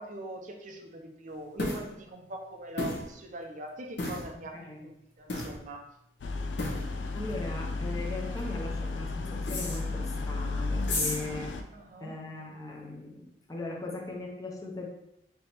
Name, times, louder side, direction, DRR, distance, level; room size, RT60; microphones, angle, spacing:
voice 1, 0.0-4.6 4.8-5.8 11.7-12.2, right 1 dB, 45° right, 3 dB, 0.6 m, -42 dB
sound 1, 1.6-1.8 2.8-3.1 4.0-4.3 5.3-5.6 6.6-6.9 9.5-9.8 10.8-11.2, left 2 dB, 65° left, 0.8 m, -32 dB
voice 2, 4.3-4.9 7.1-11.5 12.0-14.9, left 2 dB, 20° left, -1 dB, 0.6 m, -39 dB
sound 2, 6.2-11.6, left 3 dB, 90° left, 0.4 m, -33 dB
3.4 x 2.9 x 4.2 m, 0.80 s
head